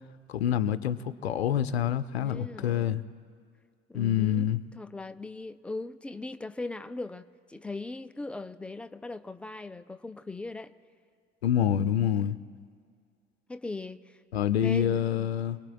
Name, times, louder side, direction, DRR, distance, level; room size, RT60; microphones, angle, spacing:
voice 1, 0.3-3.0 3.9-4.6 11.4-12.4 14.3-15.6, left 10 dB, 75° left, 0.6 m, -27 dB
voice 2, 2.1-3.0 3.9-10.7 13.5-14.2 14.6-15.3, left 3 dB, 5° left, 0.3 m, -39 dB
27.5 x 19.5 x 2.3 m
figure-of-eight pair, 65°, 32 cm